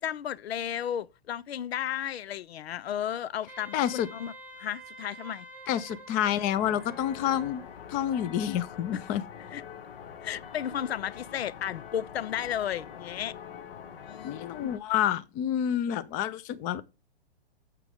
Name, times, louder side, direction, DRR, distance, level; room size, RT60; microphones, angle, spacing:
voice 1, 0.0-4.3 4.6-5.5 8.9-9.0 9.5-9.6 10.2-13.4 14.0-14.7, left 10 dB, 75° left, 0.6 m, -34 dB
Wind instrument woodwind instrument, 3.5-7.7, right 2 dB, 5° right, 0.9 m, -47 dB
voice 2, 3.7-4.1 5.7-7.6 7.9-9.2 14.2-16.8, left 10 dB, 25° left, 0.6 m, -28 dB
sound 1, 6.5-14.8, left 8 dB, 60° left, 1.2 m, -44 dB
8.2 x 5.8 x 3.6 m
hypercardioid pair, 125°, 32 cm